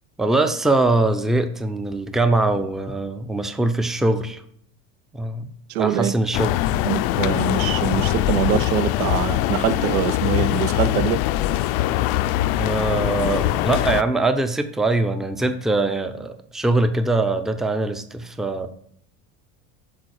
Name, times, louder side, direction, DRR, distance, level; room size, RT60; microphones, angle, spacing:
voice 1, 0.2-4.4 5.1-5.5 5.8-6.5 12.6-18.7, right 2 dB, ahead, 9 dB, 0.5 m, -22 dB
voice 2, 5.7-6.2 6.8-11.2, right 11 dB, 90° right, 14 dB, 0.7 m, -24 dB
sound 1, 6.3-14.0, left 14 dB, 65° left, 0.5 m, -22 dB
7.1 x 3.8 x 6.4 m, 0.66 s
supercardioid pair, 115°, 40 cm